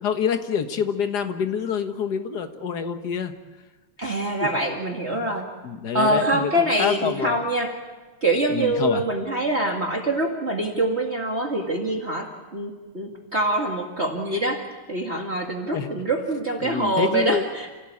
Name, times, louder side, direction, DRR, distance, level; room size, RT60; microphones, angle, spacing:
voice 1, 0.0-3.3 4.0-4.1 4.4-4.5 5.1-5.3 5.6-7.4 8.5-9.0 15.7-15.9 16.6-17.5, left 7 dB, 50° left, 7 dB, 1.9 m, -27 dB
voice 2, 4.0-5.5 5.9-7.7 8.2-17.7, right 1 dB, 30° right, 1 dB, 2.3 m, -25 dB
29.5 x 16.5 x 8.6 m, 1.3 s
omnidirectional pair, 2.4 m